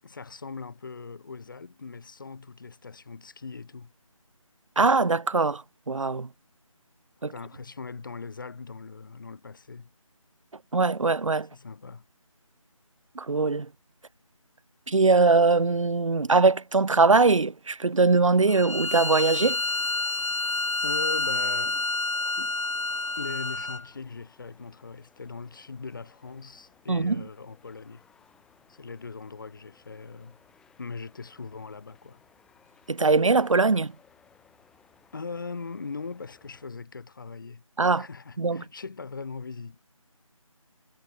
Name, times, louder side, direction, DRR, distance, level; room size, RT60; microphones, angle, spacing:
voice 1, 0.0-3.9 7.3-9.9 11.5-12.0 20.8-21.9 22.4-22.6 23.2-28.1 28.7-30.4 30.8-32.2 35.1-37.6 38.0-39.8, left 4 dB, 35° left, 7.2 m, -40 dB
voice 2, 4.8-6.3 7.2-7.3 10.7-11.5 13.2-13.7 14.9-19.6 26.9-27.2 32.9-33.9 37.8-38.1 38.4-38.6, right 3 dB, 65° right, 0.6 m, -22 dB
Bowed string instrument, 18.5-23.9, left 2 dB, 60° left, 2.7 m, -28 dB
sound 1, 19.1-36.7, left 7 dB, 5° left, 7.0 m, -61 dB
figure-of-eight pair, 160°, 18 cm